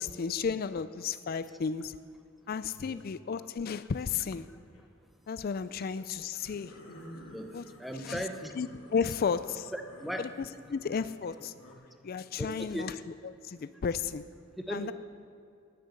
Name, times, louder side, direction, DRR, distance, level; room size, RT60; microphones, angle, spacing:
voice 1, 0.0-2.0 2.5-4.5 5.3-6.7 7.5-7.6 7.9-8.2 8.5-9.7 10.2-11.5 12.0-12.9 13.4-14.2 14.7-14.9, left 6 dB, 50° left, 13 dB, 0.4 m, -33 dB
sound 1, 2.4-2.7 4.3-4.8 6.3-11.7, left 1 dB, 90° left, 2.0 m, -52 dB
voice 2, 7.8-8.5 9.7-10.2 12.4-12.9 14.7-14.9, equal, ahead, 5 dB, 0.8 m, -37 dB
10.5 x 10.0 x 7.1 m, 2.4 s
head